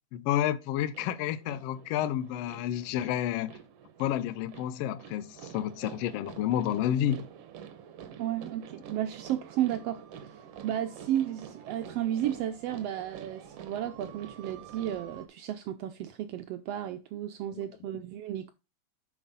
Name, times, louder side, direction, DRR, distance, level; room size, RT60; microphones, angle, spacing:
voice 1, 0.1-3.6 4.0-7.3 17.5-17.6 17.9-18.0, left 11 dB, 80° left, 1.4 m, -30 dB
sound 1, 0.9-15.3, right 8 dB, 70° right, 1.6 m, -48 dB
voice 2, 8.2-18.5, right 11 dB, 85° right, 1.4 m, -33 dB
7.2 x 6.1 x 4.0 m
omnidirectional pair, 3.3 m